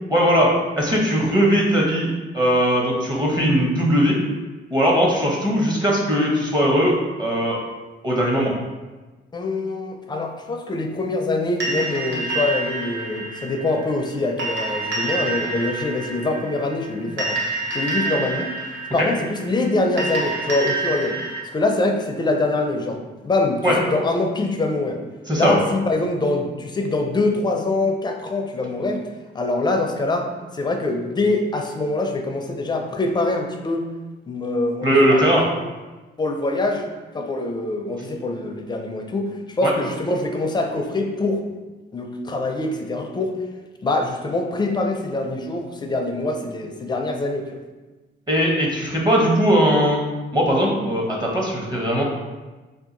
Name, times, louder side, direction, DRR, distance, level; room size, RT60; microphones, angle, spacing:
voice 1, 0.1-0.5 0.8-4.2 4.7-7.6 8.0-8.5 19.0-19.1 23.6-23.7 25.3-25.6 34.8-35.4 39.6-39.7 48.3-50.0 50.3-52.0, equal, 20° right, -2 dB, 0.8 m, -19 dB
voice 2, 9.3-18.5 18.9-21.2 21.5-23.0 23.2-25.0 25.4-29.0 29.3-30.3 30.5-33.9 34.3-35.3 35.6-35.7 36.2-36.9 37.1-41.4 41.9-43.3 43.8-47.6, left 2 dB, 20° left, 4 dB, 0.4 m, -24 dB
sound 1, 11.6-21.4, right 2 dB, 65° right, 1.0 m, -28 dB
2.8 x 2.3 x 3.8 m, 1.2 s
cardioid pair, 90°, 20 cm